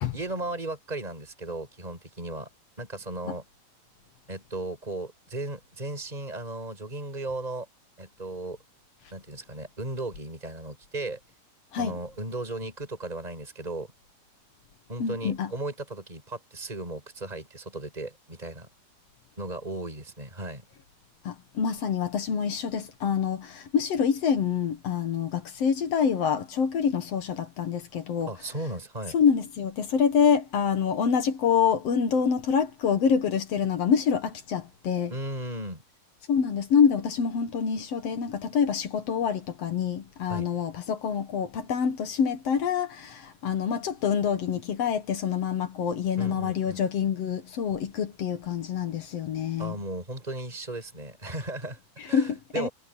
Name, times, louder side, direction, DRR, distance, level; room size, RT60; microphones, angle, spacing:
voice 1, 0.1-2.5 2.8-3.4 4.3-7.7 8.0-8.6 9.1-11.2 11.8-13.9 14.9-18.7 19.4-20.6 28.3-29.2 35.1-35.8 40.3-40.5 46.2-46.8 49.6-51.8 52.0-52.7, right 2 dB, 10° right, 6.7 m, -36 dB
voice 2, 15.0-15.5 21.3-28.3 29.1-35.1 36.3-49.7 52.1-52.7, left 7 dB, 55° left, 2.0 m, -26 dB
omnidirectional pair, 4.4 m